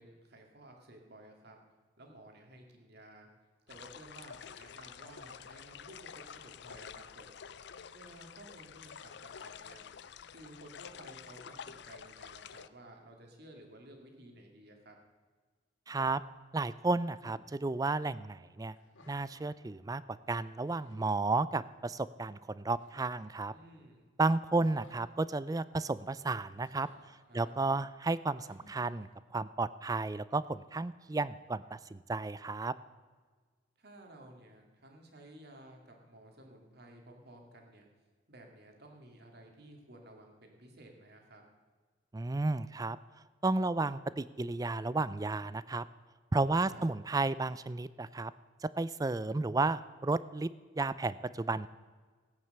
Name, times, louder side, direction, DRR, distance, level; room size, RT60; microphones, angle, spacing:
voice 1, 0.0-1.6 2.0-3.3 3.7-7.4 7.9-9.8 10.3-15.0 23.5-24.1 27.3-27.5 33.8-37.9 38.3-41.4 46.6-46.9, right 1 dB, 55° right, 2 dB, 2.4 m, -54 dB
sound 1, 3.7-12.7, left 7 dB, 60° left, 0.5 m, -49 dB
voice 2, 15.9-16.2 16.5-18.8 19.1-23.5 24.2-26.9 27.3-32.7 42.1-43.0 43.4-45.8 46.3-48.3 48.6-50.5 50.8-51.7, right 3 dB, 20° right, 17 dB, 0.4 m, -33 dB
sound 2, 17.2-17.5 18.7-19.6 20.2-20.3 20.6-21.2 22.8-23.6 24.6-25.0 26.6-27.3 28.4-29.0, left 1 dB, 85° left, 2.7 m, -61 dB
16.5 x 9.2 x 6.7 m, 1.5 s
head